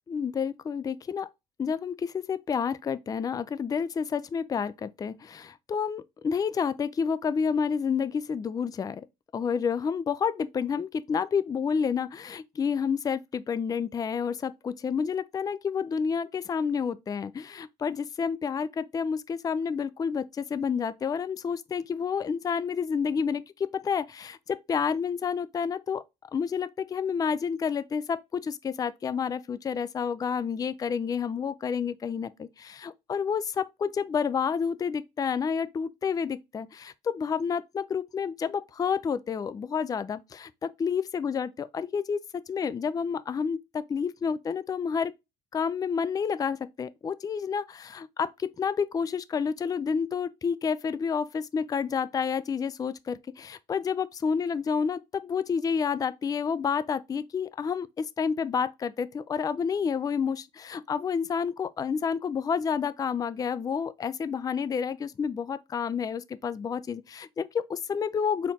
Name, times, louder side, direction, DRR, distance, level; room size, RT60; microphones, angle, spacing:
voice 1, 0.1-1.3 1.6-9.0 9.3-26.0 26.3-42.2 42.5-45.1 45.5-68.5, left 6 dB, 20° left, 0.3 m, -29 dB
4.3 x 3.6 x 2.7 m
cardioid pair, 110°, 17 cm